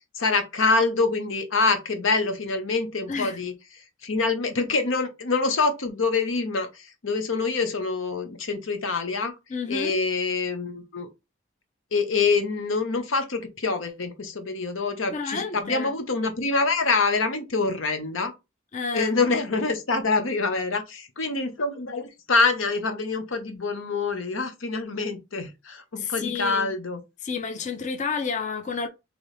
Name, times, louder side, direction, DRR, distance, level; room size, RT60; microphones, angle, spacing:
voice 1, 0.1-3.5 4.0-9.3 9.7-11.1 11.9-18.3 18.9-27.0, left 3 dB, 85° left, 0.9 m, -25 dB
voice 2, 9.5-9.9 15.1-15.9 18.7-19.1 26.0-26.7 27.2-28.9, left 5 dB, 40° left, 0.5 m, -30 dB
4.0 x 3.0 x 3.3 m
head